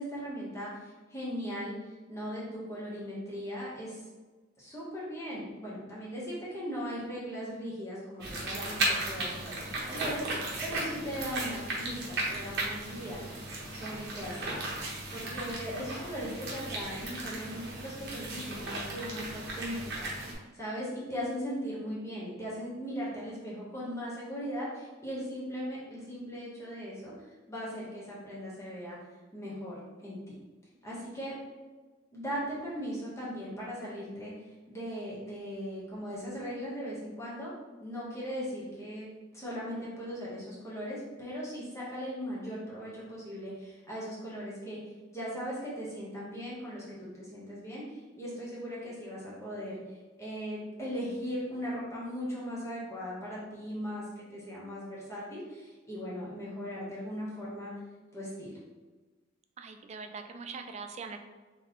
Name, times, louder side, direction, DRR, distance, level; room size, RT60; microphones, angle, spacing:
voice 1, 0.0-1.7 2.1-4.0 4.6-13.5 13.7-14.5 15.1-29.0 29.3-30.2 30.8-31.4 32.1-37.5 37.8-57.7 58.1-58.6, equal, 15° left, -7 dB, 1.3 m, -39 dB
sound 1, 8.2-20.3, right 2 dB, 60° right, 1.0 m, -36 dB
voice 2, 59.6-61.2, right 4 dB, 35° right, 6 dB, 0.3 m, -42 dB
3.8 x 3.3 x 3.1 m, 1.3 s
head